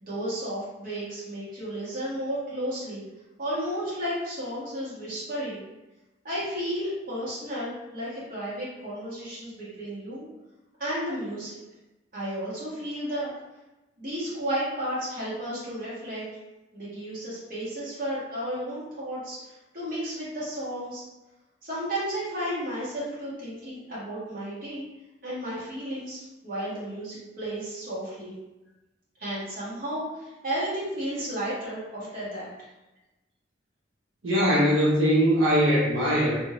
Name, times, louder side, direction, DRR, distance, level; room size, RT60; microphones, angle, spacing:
voice 1, 0.0-3.0 3.4-5.6 6.2-10.3 10.8-11.6 12.1-13.3 14.0-16.2 16.7-21.0 21.6-24.8 25.2-28.3 29.2-32.5, equal, 45° right, -9 dB, 1.4 m, -33 dB
voice 2, 34.2-36.4, equal, 80° right, -7 dB, 0.7 m, -21 dB
2.7 x 2.5 x 3.0 m, 1.0 s
head